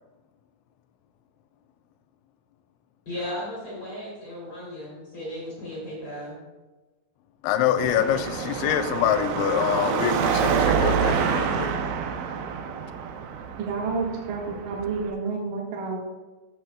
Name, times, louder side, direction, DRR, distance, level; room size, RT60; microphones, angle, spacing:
voice 1, 3.1-6.4, left 1 dB, 35° left, -6 dB, 3.1 m, -35 dB
voice 2, 7.4-11.8, left 10 dB, 90° left, 9 dB, 3.0 m, -25 dB
Car passing by / Traffic noise roadway noise / Engine, 7.8-15.1, right 6 dB, 90° right, 3.1 m, -27 dB
voice 3, 13.6-16.0, right 4 dB, 60° right, -3 dB, 2.8 m, -29 dB
13.0 x 8.6 x 2.3 m, 1.2 s
omnidirectional pair, 5.2 m